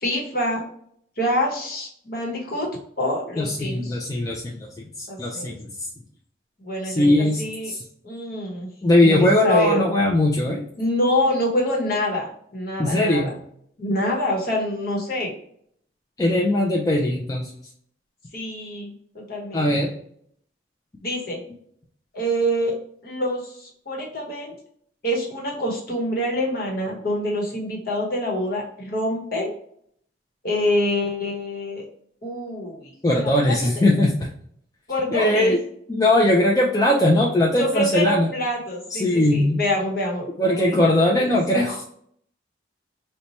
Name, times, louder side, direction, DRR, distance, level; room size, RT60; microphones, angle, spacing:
voice 1, 0.0-0.6 1.2-2.7 3.0-4.0 5.1-5.6 6.6-7.7 8.0-8.7 9.0-9.9 10.8-13.3 13.8-15.3 18.3-19.7 21.0-21.4 22.1-22.7 23.0-24.5 25.0-29.5 30.4-31.9 32.2-33.6 34.9-35.5 37.5-40.8 41.2-41.3, left 1 dB, 50° left, -2 dB, 1.0 m, -26 dB
voice 2, 3.4-5.9 6.8-7.8 8.8-10.6 12.8-13.3 16.2-17.5 19.5-19.9 33.0-34.3 35.1-35.6 35.9-38.3 38.9-39.6 40.4-41.9, left 1 dB, 20° left, -2 dB, 0.3 m, -20 dB
4.0 x 2.2 x 2.9 m, 0.66 s
head